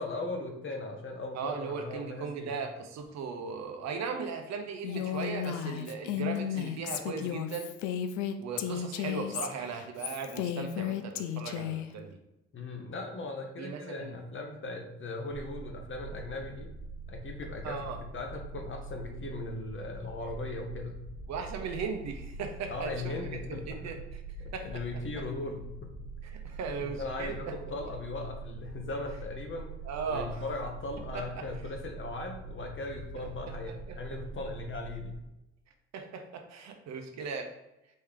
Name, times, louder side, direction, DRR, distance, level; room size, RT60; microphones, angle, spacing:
voice 1, 0.0-2.5 12.5-16.7 17.1-17.8 18.1-21.0 22.7-23.9 24.4-25.9 26.8-29.7 30.1-35.2, left 2 dB, 40° left, 3 dB, 1.1 m, -38 dB
voice 2, 1.3-7.7 8.4-12.2 13.6-14.1 17.6-18.0 21.3-24.2 24.5-24.8 25.1-25.2 26.2-27.9 29.8-30.4 31.1-31.5 33.2-33.3 33.7-34.0 35.9-37.5, right 5 dB, 65° right, 5 dB, 0.8 m, -38 dB
Female speech woman speaking, 4.8-11.9, left 10 dB, 80° left, 0.5 m, -34 dB
sound 1, 15.3-35.1, right 2 dB, 45° right, 0.9 m, -44 dB
4.4 x 3.2 x 3.6 m, 0.93 s
supercardioid pair, 65°, 29 cm